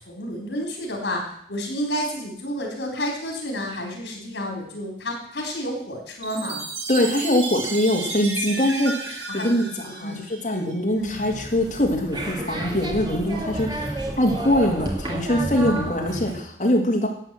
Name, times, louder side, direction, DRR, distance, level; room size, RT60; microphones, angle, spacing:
voice 1, 0.1-1.2 1.5-6.6 9.3-10.3 10.9-11.2 13.3-13.4 15.3-15.8, equal, 75° left, 0 dB, 4.1 m, -30 dB
Chime, 6.2-10.8, right 3 dB, 85° right, 2.9 m, -33 dB
voice 2, 6.9-17.1, left 1 dB, 45° left, 0 dB, 2.7 m, -23 dB
sound 1, 11.0-16.4, right 1 dB, 25° right, 2.2 m, -31 dB
12.0 x 8.5 x 7.7 m, 0.66 s
head